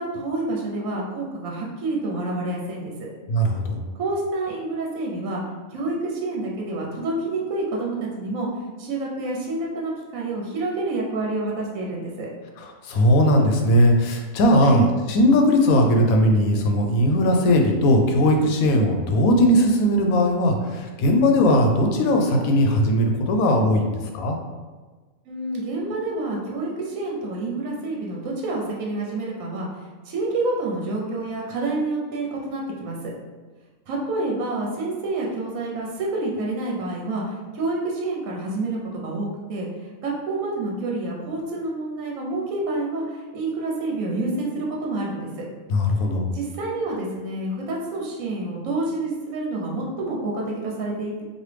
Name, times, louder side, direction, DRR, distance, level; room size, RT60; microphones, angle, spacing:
voice 1, 0.0-3.1 4.0-5.4 5.7-8.5 8.8-12.3 14.6-14.9 25.3-29.7 30.1-33.1 33.9-37.2 37.5-39.7 40.0-45.3 46.3-51.2, right 2 dB, 75° right, -2 dB, 1.1 m, -28 dB
voice 2, 3.3-3.8 12.6-24.4 45.7-46.3, equal, 85° left, 2 dB, 1.0 m, -19 dB
3.1 x 2.5 x 3.2 m, 1.3 s
omnidirectional pair, 1.4 m